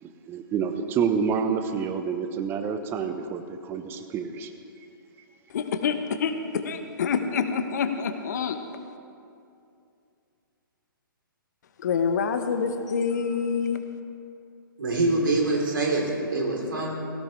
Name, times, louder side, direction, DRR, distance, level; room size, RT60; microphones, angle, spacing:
voice 1, 0.0-4.5, right 6 dB, 20° right, 8 dB, 0.8 m, -28 dB
voice 2, 5.5-8.6 11.8-13.9, left 6 dB, 50° left, 8 dB, 1.1 m, -27 dB
voice 3, 14.8-16.9, right 2 dB, 70° right, -2 dB, 3.5 m, -25 dB
17.5 x 16.5 x 3.3 m, 2.5 s
figure-of-eight pair, 125°, 12 cm